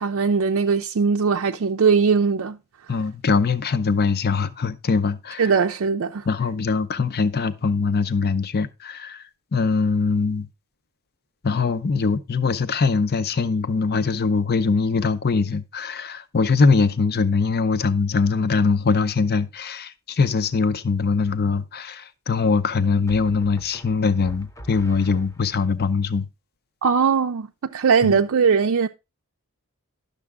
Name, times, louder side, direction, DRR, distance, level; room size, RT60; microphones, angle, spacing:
voice 1, 0.0-2.6 5.4-6.3 26.8-28.9, right 5 dB, 65° right, 0.5 m, -20 dB
voice 2, 2.9-5.5 6.3-9.2 9.5-10.5 11.4-26.3 28.0-28.2, left 4 dB, 45° left, 0.6 m, -22 dB
sound 1, 20.4-20.9 23.1-25.7, equal, 15° left, 0.8 m, -44 dB
10.5 x 6.7 x 3.5 m
head